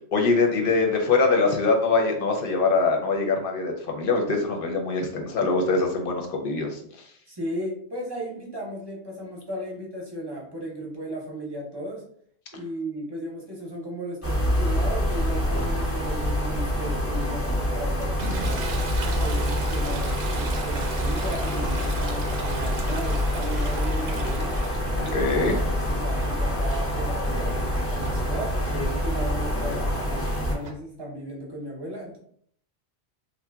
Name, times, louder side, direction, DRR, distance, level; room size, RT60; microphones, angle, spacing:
voice 1, 0.1-7.1 25.0-25.6, left 3 dB, 60° left, 2 dB, 0.8 m, -23 dB
voice 2, 7.3-12.0 12.5-18.7 19.2-24.5 25.0-28.5 29.0-32.2, right 1 dB, 25° right, -3 dB, 0.7 m, -36 dB
sound 1, 14.2-30.5, equal, 20° left, 0.4 m, -26 dB
Toilet flush, 18.2-26.0 26.4-30.7, right 3 dB, 65° right, 0.9 m, -38 dB
2.8 x 2.1 x 3.4 m, 0.62 s
omnidirectional pair, 1.1 m